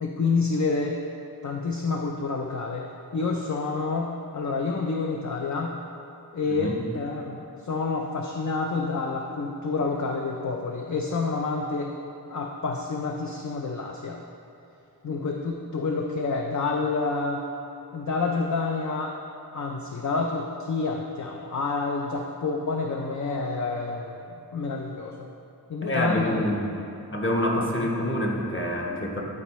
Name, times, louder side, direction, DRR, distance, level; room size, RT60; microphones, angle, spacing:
voice 1, 0.0-1.0 1.4-2.9 3.1-5.8 6.3-11.9 12.3-14.2 15.0-17.4 17.9-19.1 19.5-24.2 24.5-25.3 25.7-26.4, left 4 dB, 50° left, 1 dB, 0.5 m, -28 dB
voice 2, 6.4-6.8 25.8-26.7 27.1-29.2, equal, 30° left, -1 dB, 1.1 m, -26 dB
12.0 x 4.3 x 3.1 m, 3.0 s
wide cardioid pair, 65°, 39 cm